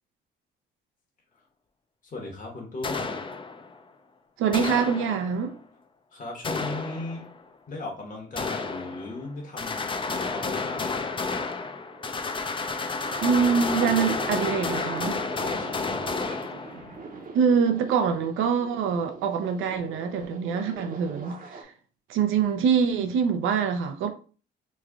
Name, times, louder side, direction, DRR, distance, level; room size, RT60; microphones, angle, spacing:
voice 1, 2.0-3.2 6.1-7.3 7.7-11.1 15.4-16.1, left 2 dB, 40° left, 1.1 m, -37 dB
sound 1, 2.8-3.8 4.5-5.5 6.4-7.4 8.4-9.3 9.6-17.1, left 4 dB, 25° left, 0.4 m, -31 dB
voice 2, 4.4-5.6 13.2-15.2 16.3-16.4 17.3-21.7 22.1-24.1, right 6 dB, 85° right, 0.6 m, -24 dB
sound 2, 11.7-21.6, right 4 dB, 45° right, 0.8 m, -40 dB
3.1 x 2.4 x 3.6 m
cardioid pair, 90°, 20 cm